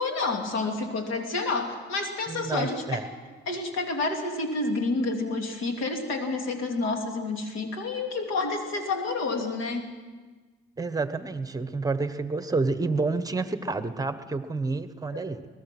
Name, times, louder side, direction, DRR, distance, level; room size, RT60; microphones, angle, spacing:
voice 1, 0.0-3.0 3.5-9.9 15.1-15.3, left 3 dB, 90° left, 3 dB, 2.9 m, -29 dB
voice 2, 2.3-3.1 10.8-15.4, right 3 dB, 20° right, 11 dB, 1.2 m, -29 dB
22.5 x 19.5 x 6.1 m, 1.4 s
cardioid pair, 90°, 20 cm